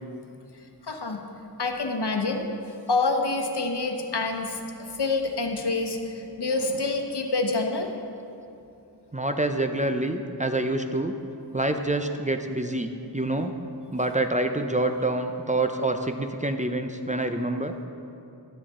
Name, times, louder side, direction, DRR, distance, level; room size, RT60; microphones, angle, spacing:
voice 1, 0.9-1.2 1.6-2.4 2.9-7.9, left 3 dB, 70° left, 3 dB, 1.1 m, -27 dB
voice 2, 9.1-11.1 11.5-13.5 13.9-17.7, right 2 dB, 20° right, 6 dB, 0.5 m, -27 dB
13.0 x 10.5 x 3.7 m, 2.7 s
wide cardioid pair, 50°, 42 cm